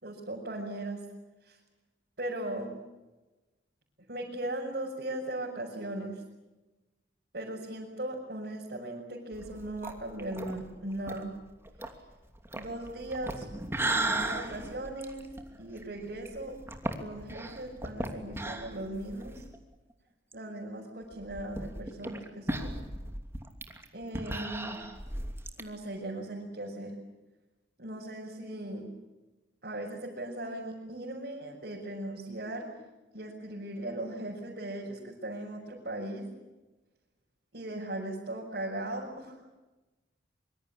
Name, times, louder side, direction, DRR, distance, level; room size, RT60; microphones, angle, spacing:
voice 1, 0.0-1.0 1.4-1.6 2.2-2.7 4.1-6.2 7.3-11.3 12.5-13.5 13.8-16.5 17.0-19.4 20.3-22.7 23.9-24.8 25.6-27.0 27.8-28.9 29.6-32.7 33.1-36.3 37.5-39.4, right 1 dB, 60° right, -4 dB, 6.2 m, -38 dB
sound 1, 9.3-19.6 19.9-20.0 20.3-20.4 21.1-25.6, right 2 dB, 15° right, 2.8 m, -36 dB
25.0 x 24.5 x 8.7 m, 1.1 s
head